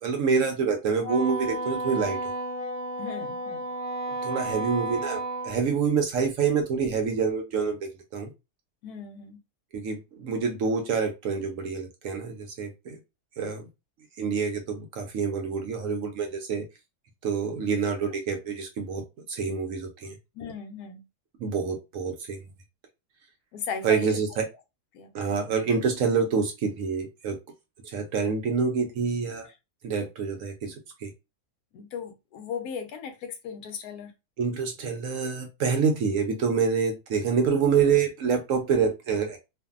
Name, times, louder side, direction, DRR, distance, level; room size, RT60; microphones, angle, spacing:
voice 1, 0.0-2.2 4.2-5.2 5.4-8.3 9.7-13.0 13.4-13.7 14.2-16.6 17.2-19.0 19.3-20.2 21.4-22.4 23.8-24.4 25.1-27.4 27.8-29.5 29.8-30.7 31.0-31.1 34.4-39.4, right 5 dB, 65° right, 0.9 m, -27 dB
Wind instrument woodwind instrument, 1.0-5.6, right 2 dB, 30° left, 0.9 m, -32 dB
voice 2, 3.0-3.6 8.8-9.4 20.3-21.0 23.5-24.2 24.9-25.4 31.7-34.1, left 6 dB, 75° left, 1.1 m, -37 dB
2.6 x 2.5 x 2.3 m
omnidirectional pair, 1.7 m